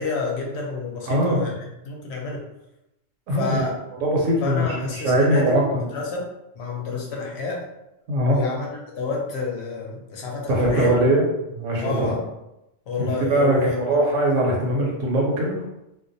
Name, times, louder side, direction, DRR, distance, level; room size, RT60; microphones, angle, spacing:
voice 1, 0.0-2.4 3.3-3.7 4.4-6.3 6.6-7.7 8.3-10.9 11.8-12.3 12.9-14.1, left 4 dB, 65° left, -1 dB, 0.8 m, -29 dB
voice 2, 1.1-1.4 3.3-3.6 4.0-5.6 8.1-8.4 10.5-12.1 13.0-15.6, right 1 dB, 85° right, -2 dB, 1.1 m, -21 dB
2.5 x 2.1 x 2.6 m, 0.89 s
omnidirectional pair, 1.3 m